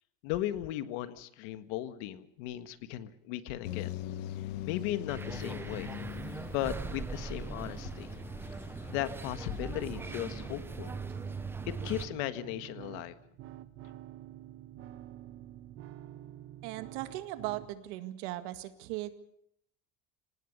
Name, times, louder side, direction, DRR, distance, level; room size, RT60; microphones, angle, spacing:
voice 1, 0.2-3.9 4.7-5.9 6.5-8.1 8.9-10.9 11.6-13.1, left 13 dB, 75° left, 11 dB, 1.7 m, -36 dB
sound 1, 3.6-10.6, left 12 dB, 90° left, 1.5 m, -43 dB
sound 2, 5.1-12.1, right 4 dB, 5° right, 0.8 m, -40 dB
sound 3, 9.7-17.7, right 12 dB, 35° right, 1.1 m, -48 dB
voice 2, 16.6-19.1, right 16 dB, 70° right, 10 dB, 2.0 m, -38 dB
25.5 x 18.5 x 6.7 m, 0.71 s
cardioid pair, 180°, 36 cm